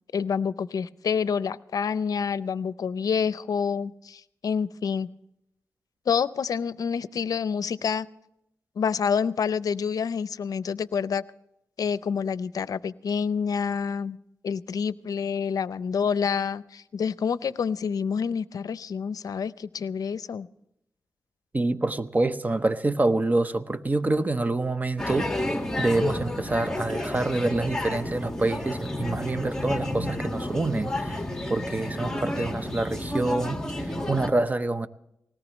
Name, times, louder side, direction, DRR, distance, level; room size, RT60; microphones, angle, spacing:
voice 1, 0.1-5.1 6.1-8.1 8.8-11.2 11.8-14.2 14.4-20.5, left 6 dB, 75° left, 0.5 m, -28 dB
voice 2, 21.5-25.5 25.8-34.9, right 2 dB, 25° right, 0.8 m, -27 dB
sound 1, 25.0-34.3, left 1 dB, 10° left, 1.8 m, -31 dB
20.0 x 18.0 x 3.1 m
wide cardioid pair, 80°, 6 cm